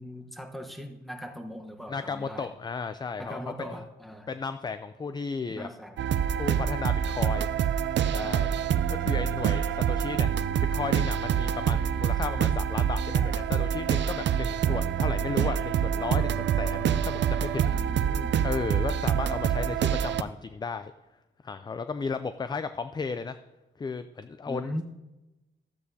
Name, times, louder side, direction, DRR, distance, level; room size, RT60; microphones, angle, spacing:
voice 1, 0.0-2.5 3.2-4.3 5.5-6.2 8.1-8.4 14.7-14.8 17.6-18.4 24.5-24.8, equal, ahead, 4 dB, 1.0 m, -40 dB
voice 2, 1.9-3.8 4.3-5.7 6.4-7.5 8.1-8.5 8.9-18.0 18.4-20.9 21.4-23.4 23.8-24.8, left 5 dB, 20° left, 11 dB, 0.4 m, -34 dB
sound 1, 6.0-20.2, right 9 dB, 65° right, 0.4 m, -26 dB
13.0 x 8.4 x 2.8 m, 1.0 s
cardioid pair, 90°, 20 cm